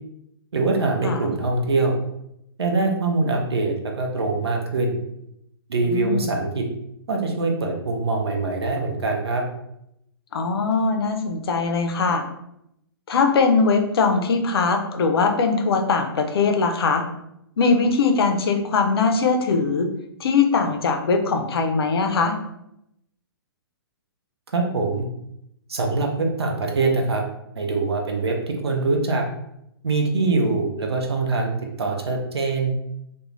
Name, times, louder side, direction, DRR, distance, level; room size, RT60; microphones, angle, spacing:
voice 1, 0.5-2.0 2.6-5.0 5.7-6.6 7.1-9.4 24.5-25.1 25.7-27.2 27.6-29.2 29.8-32.7, right 3 dB, 80° right, 1 dB, 0.6 m, -23 dB
voice 2, 5.9-6.3 10.3-12.3 13.1-17.0 17.6-19.9 20.2-22.4, left 4 dB, 70° left, 5 dB, 0.5 m, -21 dB
2.4 x 2.2 x 3.0 m, 0.79 s
hypercardioid pair, 125°, 13 cm